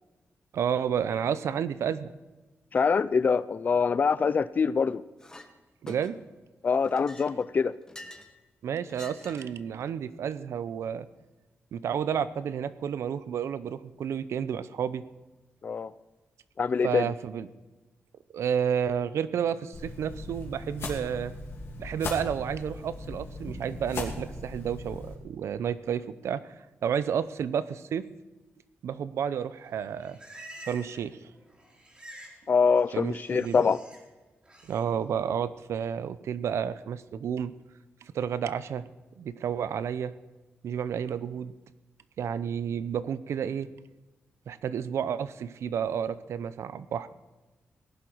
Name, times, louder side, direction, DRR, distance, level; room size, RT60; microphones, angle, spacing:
voice 1, 0.5-2.1 5.8-6.2 8.6-11.1 11.7-15.0 16.8-17.5 18.3-21.3 21.8-26.5 26.8-28.0 28.8-30.2 30.7-31.2 32.9-33.7 34.7-37.5 38.0-38.8 39.2-40.1 40.6-41.5 42.2-43.7 44.5-47.1, right 8 dB, 80° right, 15 dB, 0.7 m, -31 dB
voice 2, 2.7-5.0 6.6-7.7 15.6-15.9 16.6-17.1 32.5-33.8, left 5 dB, 40° left, 17 dB, 0.5 m, -24 dB
Chink clink, 5.2-5.5 5.9-6.4 6.8-8.3 8.9-9.6, left 1 dB, 15° left, 1.3 m, -47 dB
sound 1, 19.7-25.1, left 2 dB, 65° left, 2.8 m, -38 dB
Livestock farm animals working animals, 29.7-31.1 31.3-32.4 32.7-34.0 34.4-34.8, right 1 dB, 20° right, 3.7 m, -48 dB
18.0 x 11.0 x 4.7 m, 1.2 s
wide cardioid pair, 145°, 5 cm